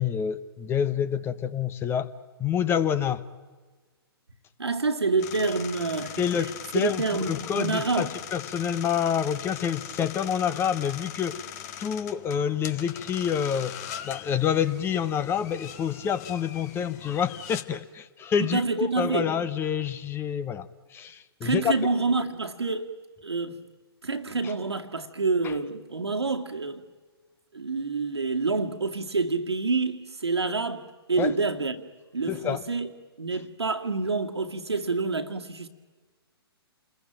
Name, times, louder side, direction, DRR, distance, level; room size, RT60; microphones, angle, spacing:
voice 1, 0.0-2.1 2.4-3.2 6.2-11.4 11.8-13.8 14.0-21.7 31.2-31.3 32.3-32.6, left 8 dB, 15° left, 0.9 m, -27 dB
voice 2, 4.6-8.1 18.4-19.3 21.4-22.9 23.2-23.6 24.0-26.8 27.5-31.8 32.1-32.9 33.2-35.7, right 3 dB, 80° right, 2.2 m, -28 dB
sound 1, 5.2-17.6, left 9 dB, 40° left, 1.7 m, -41 dB
28.5 x 21.5 x 9.0 m
figure-of-eight pair, 125°, 13 cm